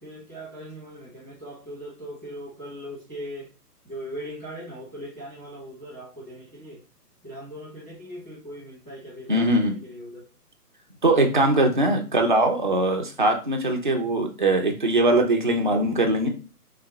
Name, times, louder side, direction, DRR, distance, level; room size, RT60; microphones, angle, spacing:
voice 1, 0.0-3.5 3.8-6.8 7.2-10.2, equal, 5° left, -7 dB, 1.1 m, -39 dB
voice 2, 9.3-9.7 11.0-16.3, right 2 dB, 35° right, 2 dB, 0.4 m, -21 dB
3.2 x 2.9 x 3.4 m, 0.36 s
hypercardioid pair, 155°, 47 cm